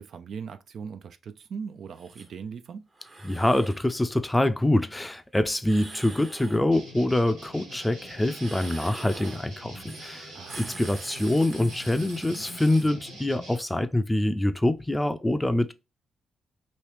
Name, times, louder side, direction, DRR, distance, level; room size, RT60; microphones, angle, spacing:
voice 1, 0.0-2.9 10.3-10.7, right 6 dB, 60° right, 0.3 m, -39 dB
sound 1, 2.0-2.3 2.9-3.9 5.6-6.7 8.3-9.5 9.9-10.1 10.4-12.9, right 2 dB, 40° right, 1.0 m, -44 dB
voice 2, 3.2-15.7, left 1 dB, 15° left, 0.4 m, -25 dB
sound 2, 6.7-13.6, equal, 85° right, 1.4 m, -44 dB
3.0 x 2.7 x 3.1 m
hypercardioid pair, 45°, 0 cm